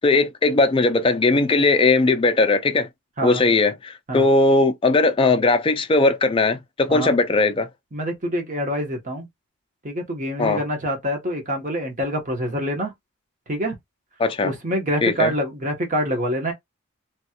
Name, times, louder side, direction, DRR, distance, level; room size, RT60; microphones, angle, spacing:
voice 1, 0.0-2.9 3.2-7.7 10.4-10.6 14.2-14.5 15.0-15.3, left 3 dB, 25° left, 0.3 m, -19 dB
voice 2, 7.9-9.3 9.8-12.9 13.5-13.7 14.4-16.5, equal, 40° right, 1.0 m, -26 dB
3.1 x 2.3 x 2.8 m
head